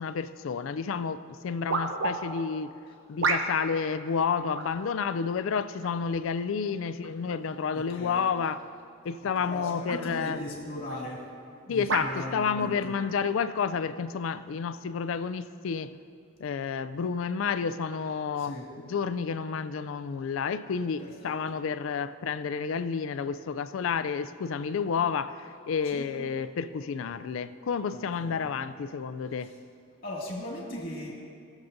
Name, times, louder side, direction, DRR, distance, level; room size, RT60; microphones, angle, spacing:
voice 1, 0.0-2.7 3.1-8.6 9.0-10.4 11.7-15.9 16.4-18.5 18.9-29.5, left 6 dB, 75° left, 13 dB, 0.4 m, -30 dB
sound 1, 0.7-0.8 1.7-2.2 3.2-3.7 4.5-4.8 5.8-6.2 7.0-7.1 9.0-9.3 9.9-10.0 10.9-11.0 11.9-12.1 13.0-13.1, right 4 dB, 70° right, 0.7 m, -30 dB
voice 2, 7.7-8.2 9.2-11.2 11.7-12.9 18.4-18.7 21.0-21.6 25.8-26.1 27.9-28.7 29.4-29.5 30.0-31.1, left 1 dB, 45° left, -4 dB, 2.2 m, -39 dB
18.0 x 7.2 x 2.6 m, 2.3 s
head